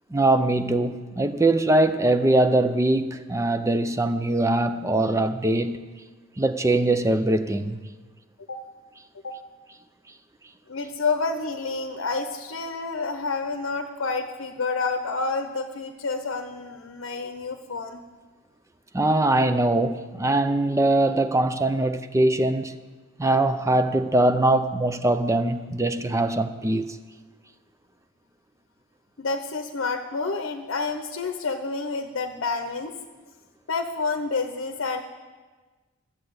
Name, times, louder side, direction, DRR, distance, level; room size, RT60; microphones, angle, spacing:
voice 1, 0.1-5.9 6.4-7.8 18.9-22.8 23.2-27.0, right 2 dB, 15° right, 0.5 m, -22 dB
voice 2, 10.7-18.0 29.2-32.9 33.7-35.0, left 4 dB, 60° left, 0.8 m, -29 dB
12.0 x 7.5 x 8.0 m
head